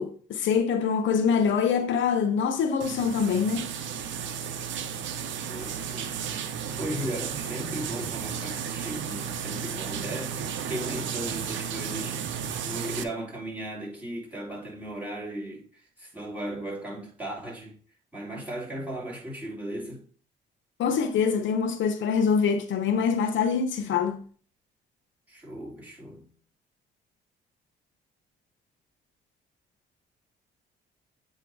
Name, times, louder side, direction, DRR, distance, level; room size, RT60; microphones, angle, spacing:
voice 1, 0.0-3.7 20.8-24.2, left 6 dB, 70° left, 0.9 m, -24 dB
sound 1, 2.8-13.0, right 7 dB, 70° right, 0.7 m, -33 dB
voice 2, 5.3-6.2 6.8-17.8 18.1-20.1 25.3-26.3, right 1 dB, 5° right, 3.0 m, -37 dB
7.8 x 2.8 x 4.7 m
cardioid pair, 90°, 20 cm